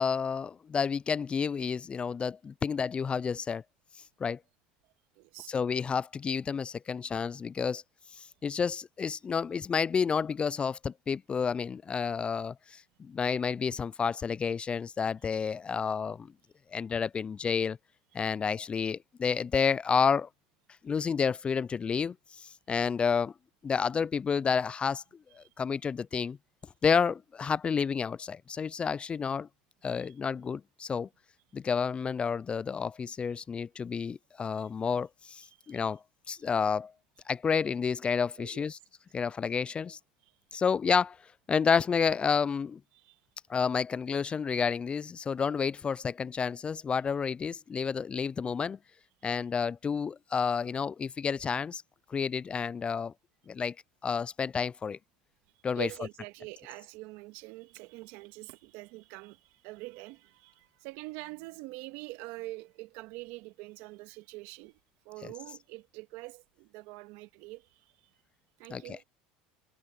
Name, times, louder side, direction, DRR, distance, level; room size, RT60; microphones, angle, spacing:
voice 1, 0.0-3.6 4.2-4.4 5.5-7.8 8.1-16.3 16.7-17.8 18.1-20.3 20.8-23.3 23.6-25.0 25.3-26.4 26.8-29.5 29.8-31.1 31.5-36.9 37.3-38.8 39.1-40.0 40.5-41.2 41.5-42.8 43.5-48.8 49.2-51.8 52.1-53.1 53.5-53.7 54.0-55.0 55.6-56.1 65.2-65.3 68.7-69.0, left 6 dB, 25° left, 0.4 m, -30 dB
voice 2, 5.2-5.5 25.4-25.5 29.8-30.1 34.5-34.6 35.6-35.9 38.4-38.7 42.9-43.2 55.7-64.8 65.1-68.1 68.6-69.0, right 22 dB, 70° right, 1.9 m, -45 dB
supercardioid pair, 95°, 4 cm